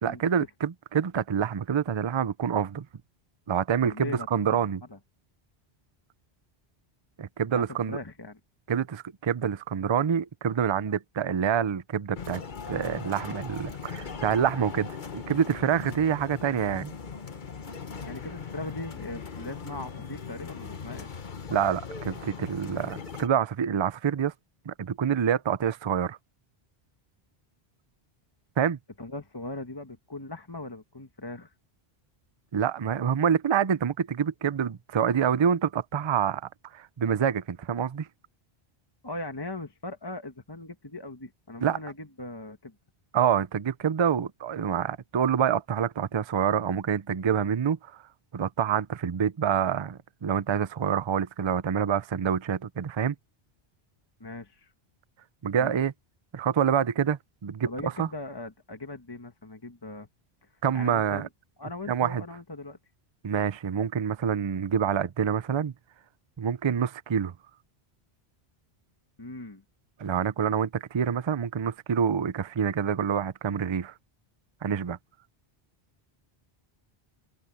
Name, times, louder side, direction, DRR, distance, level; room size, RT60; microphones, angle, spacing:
voice 1, 0.0-2.9 3.5-4.8 7.2-8.0 8.7-12.4 12.7-16.9 21.5-24.3 24.7-26.2 28.6-28.8 32.5-36.4 36.7-38.1 41.6-41.8 43.1-48.0 48.3-53.1 55.4-55.9 56.3-58.1 60.6-61.3 61.9-62.2 63.2-65.7 66.4-67.3 70.0-73.9 74.6-75.0, right 8 dB, 35° right, 0.5 m, -27 dB
voice 2, 3.8-4.6 4.9-5.0 7.5-8.4 18.0-21.1 29.0-31.5 39.0-42.7 54.2-54.7 55.6-55.7 57.7-60.1 60.4-61.3 61.6-62.8 69.2-69.6, left 2 dB, 25° left, 1.3 m, -39 dB
sound 1, 12.2-23.3, left 5 dB, 50° left, 1.2 m, -39 dB
open air
omnidirectional pair, 1.1 m